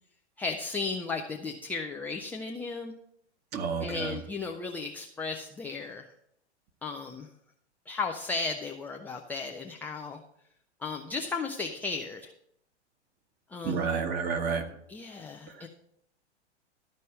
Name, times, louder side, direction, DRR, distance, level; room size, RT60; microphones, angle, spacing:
voice 1, 0.4-2.9 3.8-6.1 6.8-7.3 7.9-10.2 10.8-12.3 13.5-13.9 14.9-15.7, left 4 dB, 5° left, 3 dB, 0.3 m, -35 dB
voice 2, 3.5-4.2 13.6-14.6 15.5-15.6, right 5 dB, 30° right, 5 dB, 1.5 m, -30 dB
12.5 x 5.3 x 7.4 m, 0.72 s
figure-of-eight pair, 100°, 34 cm